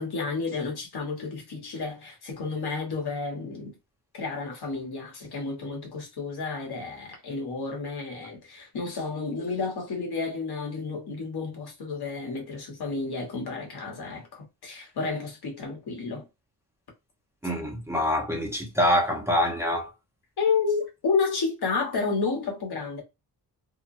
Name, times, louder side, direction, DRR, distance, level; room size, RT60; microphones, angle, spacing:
voice 1, 0.0-3.8 4.1-16.3 20.4-23.0, left 4 dB, 70° left, 1.2 m, -31 dB
voice 2, 17.4-19.9, left 1 dB, 5° right, 0.7 m, -25 dB
2.9 x 2.2 x 2.5 m
wide cardioid pair, 125°, 40 cm